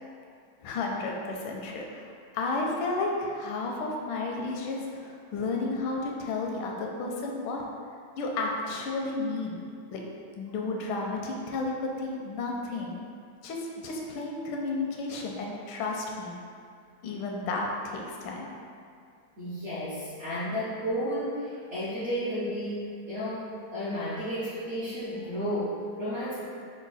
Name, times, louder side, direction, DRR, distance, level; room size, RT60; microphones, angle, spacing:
voice 1, 0.6-7.6 8.2-9.6 9.9-10.0 10.4-13.0 13.4-16.4 17.0-18.5, left 3 dB, 80° left, 0 dB, 1.4 m, -32 dB
voice 2, 19.4-26.3, equal, 60° right, -12 dB, 0.7 m, -32 dB
4.8 x 2.2 x 4.0 m, 2.3 s
omnidirectional pair, 2.2 m